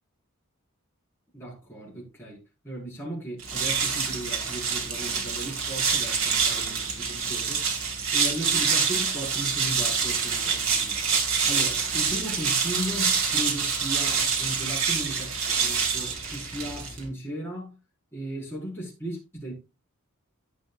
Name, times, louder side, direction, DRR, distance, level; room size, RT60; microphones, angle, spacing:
voice 1, 1.3-2.4 2.6-7.7 8.1-11.0 11.2-17.8 18.1-19.5, right 1 dB, 10° left, 4.3 m, -36 dB
sound 1, 3.4-17.1, right 5 dB, 70° right, 2.5 m, -26 dB
16.0 x 5.5 x 2.3 m
head